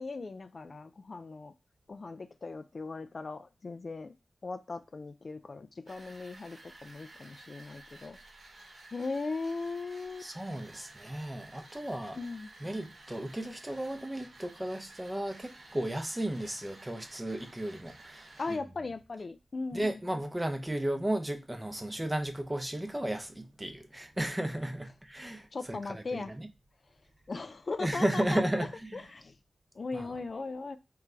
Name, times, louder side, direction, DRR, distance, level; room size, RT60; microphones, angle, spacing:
voice 1, 0.0-1.5 1.9-4.1 4.4-8.2 8.9-10.3 12.1-12.5 18.4-20.0 25.5-26.3 27.3-29.4 29.8-30.8, left 3 dB, 45° left, 0.3 m, -38 dB
sound 1, 5.9-18.6, right 2 dB, 60° right, 1.2 m, -53 dB
voice 2, 10.2-12.2 12.6-18.3 19.7-26.5 27.8-29.0 29.9-30.2, right 1 dB, 15° right, 0.6 m, -34 dB
3.8 x 3.2 x 3.3 m
wide cardioid pair, 120°, 0 cm